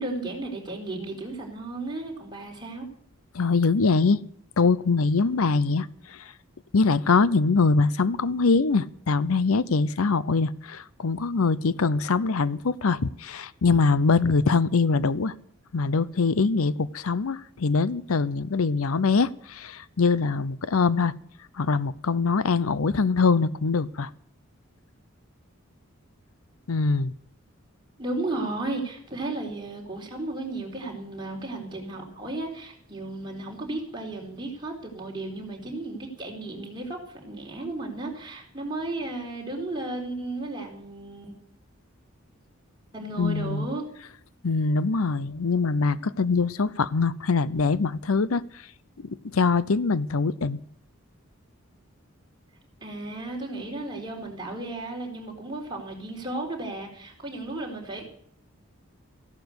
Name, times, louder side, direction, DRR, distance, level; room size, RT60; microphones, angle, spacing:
voice 1, 0.0-2.9 5.2-5.5 28.0-41.3 42.9-43.8 52.8-58.0, right 2 dB, 20° right, -1 dB, 4.2 m, -34 dB
voice 2, 3.3-4.2 4.6-6.3 6.7-15.3 15.7-21.1 21.5-24.1 26.7-27.1 43.2-43.7 44.4-48.4 49.0-50.6, left 4 dB, 85° left, 18 dB, 0.7 m, -23 dB
15.0 x 11.5 x 8.1 m, 0.63 s
head